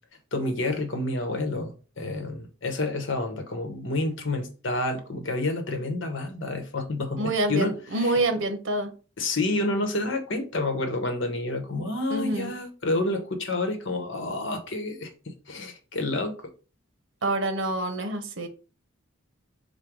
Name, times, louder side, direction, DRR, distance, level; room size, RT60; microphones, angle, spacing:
voice 1, 0.3-7.7 8.0-8.1 9.2-16.3, left 2 dB, 60° left, 1.0 m, -29 dB
voice 2, 7.2-8.9 12.1-12.5 17.2-18.5, right 2 dB, 65° right, 0.9 m, -27 dB
5.0 x 2.2 x 4.6 m
head